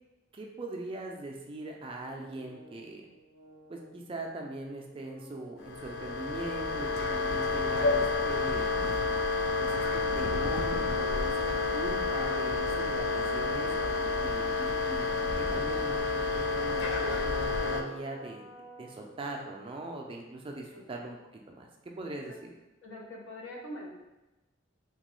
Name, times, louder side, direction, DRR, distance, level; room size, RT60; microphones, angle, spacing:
voice 1, 0.3-3.1 3.7-8.7 9.6-13.7 14.2-15.1 15.4-18.4 18.8-21.7 22.0-22.5, right 2 dB, 25° right, 1 dB, 0.3 m, -41 dB
sound 1, 2.0-19.7, equal, 35° left, 0.8 m, -53 dB
sound 2, 5.6-17.8, left 3 dB, 60° left, 0.3 m, -29 dB
voice 2, 22.8-23.9, left 1 dB, 90° left, -1 dB, 0.7 m, -43 dB
2.9 x 2.2 x 3.0 m, 1.0 s
head